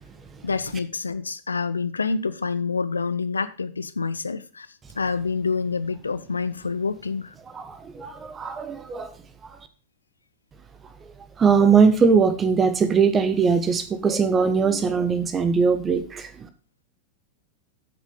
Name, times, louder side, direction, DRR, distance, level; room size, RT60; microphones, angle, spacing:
voice 1, 0.4-4.7 5.0-7.3, left 4 dB, 75° left, 0.7 m, -27 dB
voice 2, 7.5-9.1 11.4-16.5, right 5 dB, 20° right, 1.2 m, -20 dB
8.6 x 6.3 x 5.6 m
figure-of-eight pair, 90°, 0 cm